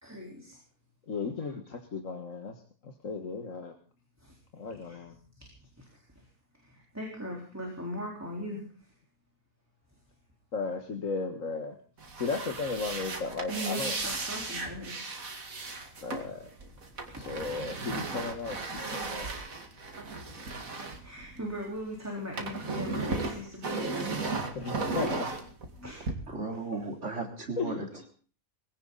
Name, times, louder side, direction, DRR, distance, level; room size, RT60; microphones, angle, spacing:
voice 1, 0.0-0.5 4.9-5.0 6.9-8.6 13.5-14.9 20.5-24.1 25.8-26.0, equal, 10° right, -1 dB, 4.0 m, -39 dB
voice 2, 1.1-3.7 4.5-5.2 10.5-11.8 12.1-14.0 16.0-16.6 17.1-19.3 24.6-25.3 27.6-28.1, left 4 dB, 65° left, 4 dB, 2.0 m, -35 dB
sound 1, 12.0-21.8 22.1-26.1, right 3 dB, 75° right, 2.7 m, -35 dB
voice 3, 26.3-28.1, right 3 dB, 55° right, 2 dB, 3.8 m, -36 dB
21.0 x 17.0 x 4.1 m, 0.41 s
omnidirectional pair, 1.5 m